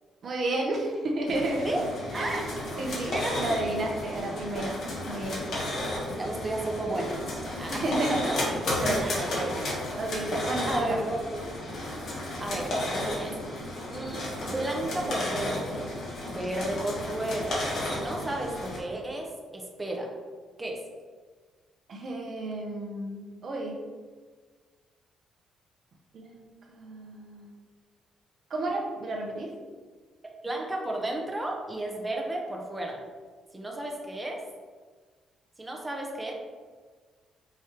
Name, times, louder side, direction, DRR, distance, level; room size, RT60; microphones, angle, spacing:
voice 1, 0.2-1.7 2.1-2.5 2.8-4.8 5.0-5.4 7.7-8.2 8.8-11.0 21.9-23.8 26.1-27.5 28.5-29.5, right 2 dB, 55° right, 0 dB, 0.7 m, -32 dB
sound 1, 1.3-18.8, left 1 dB, 65° left, 1.3 m, -33 dB
voice 2, 3.1-3.6 6.2-8.4 9.0-9.2 10.7-11.5 12.4-13.6 13.9-16.0 16.3-17.6 17.9-20.1 20.6-20.8 30.4-33.0 33.5-34.4 35.6-36.3, right 1 dB, 15° right, 0 dB, 0.7 m, -33 dB
4.8 x 3.1 x 2.9 m, 1.5 s
cardioid pair, 90°, 0 cm